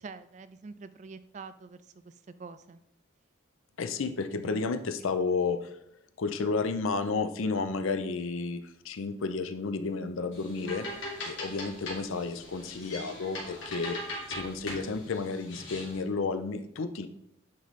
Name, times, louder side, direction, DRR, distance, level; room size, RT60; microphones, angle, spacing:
voice 1, 0.0-2.8 4.3-4.6, right 4 dB, 35° right, 12 dB, 0.3 m, -46 dB
voice 2, 3.8-5.7 6.2-17.1, left 4 dB, 90° left, 10 dB, 0.5 m, -32 dB
sound 1, 10.3-16.0, left 1 dB, 70° left, 2.0 m, -40 dB
9.3 x 3.2 x 4.1 m, 0.74 s
head